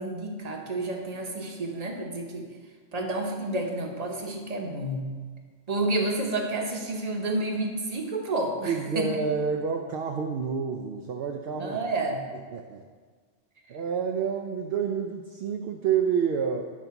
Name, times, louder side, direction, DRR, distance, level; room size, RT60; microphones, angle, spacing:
voice 1, 0.0-2.5 2.9-5.1 5.7-9.1 11.6-12.2, right 2 dB, 35° right, 2 dB, 1.0 m, -30 dB
voice 2, 8.6-11.8 12.5-12.8 13.7-16.6, right 6 dB, 60° right, 3 dB, 0.7 m, -28 dB
9.7 x 4.0 x 5.8 m, 1.5 s
omnidirectional pair, 1.2 m